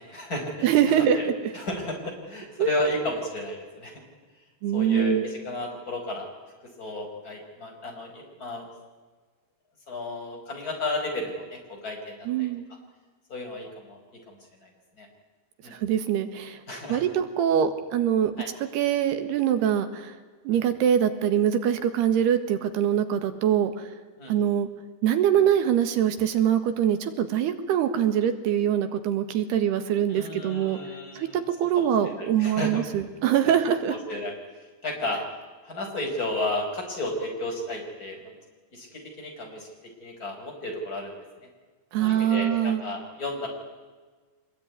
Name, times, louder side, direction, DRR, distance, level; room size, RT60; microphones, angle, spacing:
voice 1, 0.0-1.3 1.5-3.9 4.7-6.3 6.8-8.7 9.9-12.5 13.3-14.0 14.3-14.4 14.6-14.7 15.0-15.1 15.6-15.7 16.7-17.1 18.4-18.5 20.5-20.6 24.2-24.3 30.1-32.8 33.9-34.3 34.8-35.2 35.6-38.3 38.7-41.1 42.0-43.5, left 1 dB, 20° left, 1 dB, 5.5 m, -33 dB
voice 2, 0.6-1.3 2.6-2.7 4.6-5.2 12.3-12.6 15.7-16.6 16.9-18.3 18.7-20.1 20.5-23.9 24.3-24.7 25.0-30.8 31.2-31.3 31.6-34.0 41.9-42.8, right 9 dB, 85° right, 9 dB, 3.7 m, -23 dB
24.5 x 21.5 x 9.7 m, 1.4 s
omnidirectional pair, 4.6 m